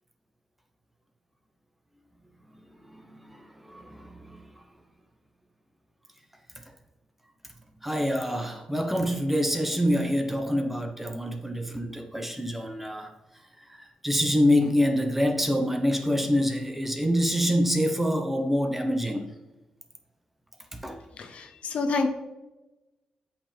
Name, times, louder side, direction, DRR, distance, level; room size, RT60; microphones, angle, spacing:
voice 1, 2.9-4.4 7.8-13.1 13.7-19.2 20.8-21.0, equal, 10° right, 4 dB, 1.0 m, -26 dB
voice 2, 21.2-22.1, left 3 dB, 70° left, 5 dB, 0.8 m, -28 dB
8.1 x 5.7 x 3.5 m, 1.1 s
cardioid pair, 95°, 2 cm